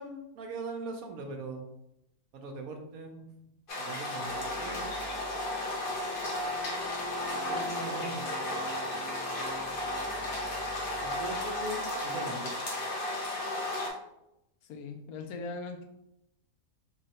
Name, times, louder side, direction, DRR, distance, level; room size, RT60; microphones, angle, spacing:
voice 1, 0.0-1.6 2.3-3.2 3.8-4.9 7.5-8.2 11.0-12.5, right 2 dB, 80° right, 4 dB, 1.1 m, -40 dB
sound 1, 3.7-13.9, left 1 dB, 45° left, 0.8 m, -34 dB
sound 2, 4.2-12.1, equal, 35° right, 0.4 m, -46 dB
voice 2, 14.6-15.9, left 3 dB, 85° left, 5 dB, 1.1 m, -40 dB
3.7 x 3.1 x 2.8 m, 0.84 s
omnidirectional pair, 1.5 m